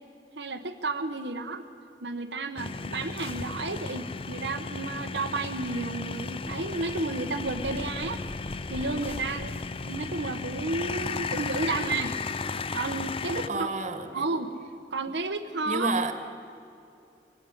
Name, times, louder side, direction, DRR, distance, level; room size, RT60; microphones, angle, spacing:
voice 1, 0.4-1.6 2.0-8.2 8.7-12.2 12.7-13.7 14.1-14.5 14.9-15.9, right 3 dB, 80° right, 4 dB, 1.1 m, -32 dB
sound 1, 2.6-13.5, left 4 dB, 30° left, 0.6 m, -34 dB
voice 2, 13.5-14.2 15.6-16.1, right 3 dB, 40° right, 8 dB, 1.8 m, -29 dB
24.0 x 15.5 x 10.0 m, 2.6 s
head